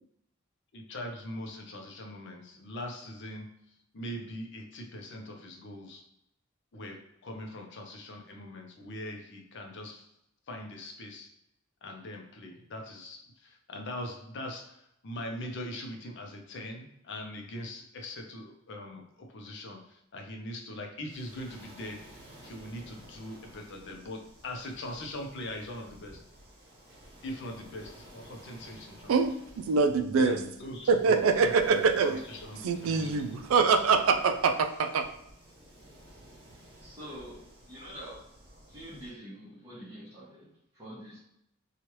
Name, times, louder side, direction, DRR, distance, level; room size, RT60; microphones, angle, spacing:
voice 1, 0.7-3.5 3.9-6.0 6.7-10.1 10.5-11.3 11.8-22.0 22.4-26.2 27.2-29.1 30.2-33.2, left 1 dB, 60° left, 3 dB, 0.6 m, -41 dB
Waves surf, 21.1-39.1, right 1 dB, 50° right, 1.2 m, -53 dB
voice 2, 29.1-30.4 30.9-32.2 32.6-35.1, right 5 dB, 85° right, 8 dB, 0.4 m, -24 dB
voice 3, 36.8-38.3 38.7-41.2, equal, 20° right, -10 dB, 0.9 m, -46 dB
3.0 x 2.4 x 2.9 m, 0.80 s
head